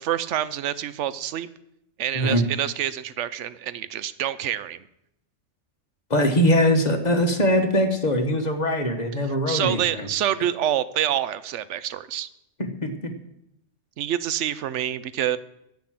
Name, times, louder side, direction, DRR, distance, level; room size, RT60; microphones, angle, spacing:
voice 1, 0.0-1.5 2.0-4.8 9.5-12.3 14.0-15.4, right 11 dB, 80° right, 15 dB, 1.0 m, -27 dB
voice 2, 6.1-10.1 12.6-13.1, equal, 35° left, 5 dB, 1.4 m, -22 dB
10.5 x 7.7 x 7.6 m, 0.80 s
omnidirectional pair, 1.2 m